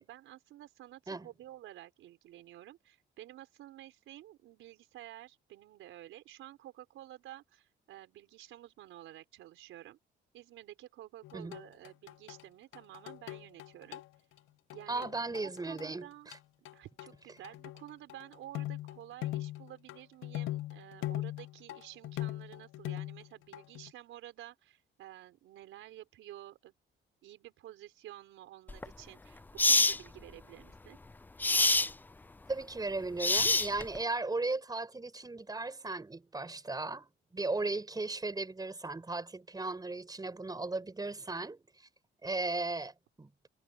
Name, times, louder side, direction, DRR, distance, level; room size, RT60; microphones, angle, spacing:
voice 1, 0.0-10.0 10.3-14.0 14.7-15.1 15.4-16.3 16.7-26.7 27.2-31.0, right 13 dB, 85° right, 4.7 m, -51 dB
sound 1, 11.2-12.4 12.7-14.1 14.4-14.5 14.7-15.9 16.3-16.4 16.6-17.1 17.4-23.3 23.5-23.9, left 15 dB, 90° left, 0.6 m, -40 dB
voice 2, 14.9-16.4 32.5-41.9 42.2-43.3, right 3 dB, 20° right, 4.4 m, -36 dB
sound 2, 28.7-28.9 29.6-30.0 31.4-31.9 33.2-34.0, left 2 dB, 10° left, 0.3 m, -25 dB
cardioid pair, 90°, 20 cm